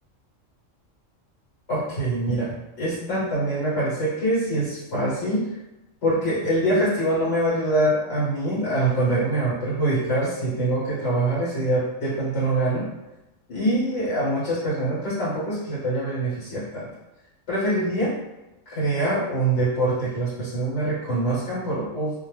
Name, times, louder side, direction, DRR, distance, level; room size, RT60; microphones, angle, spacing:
voice 1, 1.7-5.5 6.0-12.9 13.5-16.9 17.5-18.1 18.7-22.1, right 1 dB, 60° left, -9 dB, 1.1 m, -24 dB
2.3 x 2.2 x 3.1 m, 0.97 s
omnidirectional pair, 1.3 m